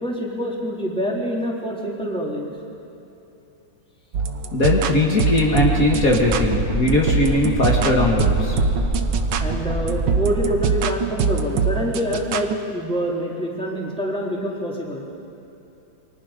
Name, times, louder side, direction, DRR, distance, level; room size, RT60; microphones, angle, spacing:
voice 1, 0.0-2.5 9.4-15.1, equal, 5° left, -3 dB, 3.5 m, -26 dB
sound 1, 4.1-12.6, right 5 dB, 80° right, 1.7 m, -24 dB
voice 2, 4.5-8.6, left 2 dB, 50° left, -2 dB, 2.5 m, -19 dB
sound 2, 5.5-10.6, right 2 dB, 25° right, 3.8 m, -26 dB
29.0 x 24.5 x 5.2 m, 3.0 s
omnidirectional pair, 1.9 m